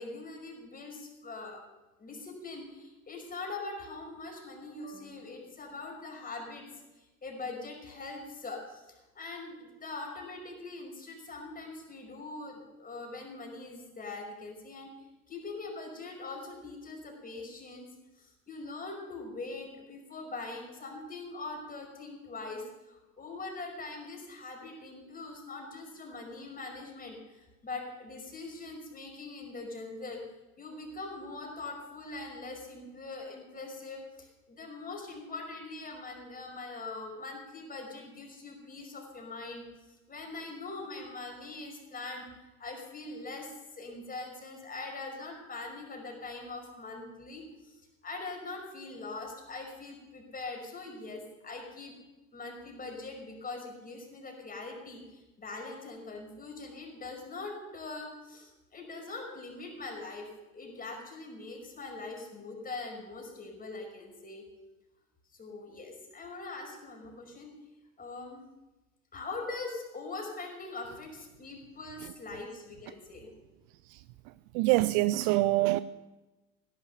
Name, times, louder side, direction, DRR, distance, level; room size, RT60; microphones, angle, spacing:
voice 1, 0.0-1.6 2.0-6.6 7.0-14.9 15.3-17.9 18.2-30.2 30.6-39.6 40.1-42.3 42.6-51.9 52.3-64.4 65.3-67.5 68.0-68.4 69.1-73.3, left 3 dB, 20° left, 5.4 m, -42 dB
voice 2, 74.5-75.8, right 18 dB, 45° right, 0.5 m, -25 dB
17.0 x 11.5 x 6.9 m
figure-of-eight pair, 75°, 42 cm